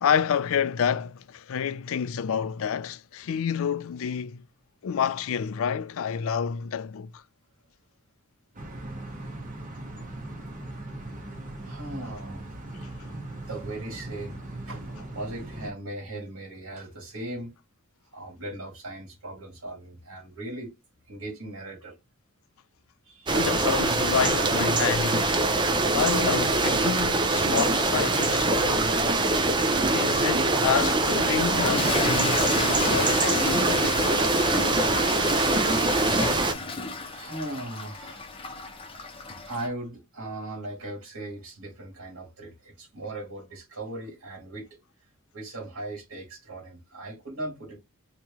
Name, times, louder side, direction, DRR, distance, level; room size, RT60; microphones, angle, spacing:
voice 1, 0.0-4.4 4.8-7.2 13.1-13.2 23.3-25.4 25.9-28.9 29.9-32.5 32.9-33.8, left 7 dB, 70° left, 0.4 m, -28 dB
sound 1, 8.5-15.7, right 1 dB, 40° right, 1.0 m, -39 dB
voice 2, 11.6-12.5 13.5-17.6 18.1-20.7 21.1-22.0 23.0-23.4 37.1-38.4 38.7-38.8 39.0-39.2 39.5-44.8 45.3-47.8, right 1 dB, 80° right, 1.9 m, -38 dB
sound 2, 23.3-36.5, right 2 dB, 20° right, 0.5 m, -23 dB
Toilet flush / Fill (with liquid), 31.4-39.7, left 3 dB, 25° left, 0.7 m, -32 dB
3.0 x 3.0 x 3.5 m
head